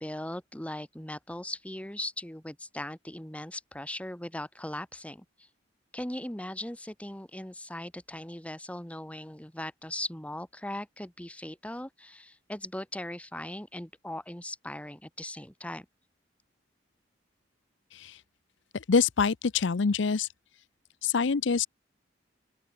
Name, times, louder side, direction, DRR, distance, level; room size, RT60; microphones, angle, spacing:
voice 1, 0.0-5.5 5.9-15.9, left 1 dB, 5° left, 1.7 m, -39 dB
voice 2, 18.7-20.3 21.0-21.7, left 5 dB, 70° left, 0.6 m, -25 dB
open air
head